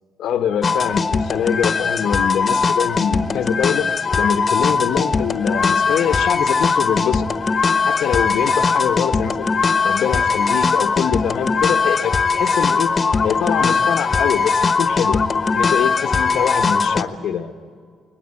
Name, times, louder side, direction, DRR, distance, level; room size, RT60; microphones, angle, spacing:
voice 1, 0.2-3.9 4.2-7.3 7.9-9.6 9.8-12.9 13.2-15.2 15.5-17.5, left 8 dB, 75° left, 9 dB, 1.1 m, -23 dB
sound 1, 0.6-17.0, left 5 dB, 40° left, 1.3 m, -20 dB
21.5 x 20.0 x 8.8 m, 2.1 s
cardioid pair, 90°, 0 cm